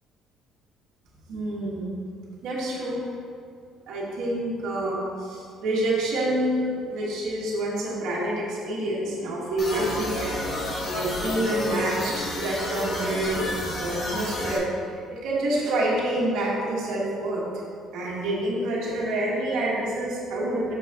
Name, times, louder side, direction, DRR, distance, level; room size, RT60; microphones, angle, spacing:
voice 1, 1.3-1.9 2.4-3.0 3.9-10.4 10.9-13.5 13.8-17.5 17.9-20.7, right 1 dB, 75° right, -5 dB, 1.4 m, -27 dB
sound 1, 9.6-14.6, left 1 dB, 40° left, 1.1 m, -30 dB
6.0 x 5.6 x 2.9 m, 2.3 s
cardioid pair, 115°, 0 cm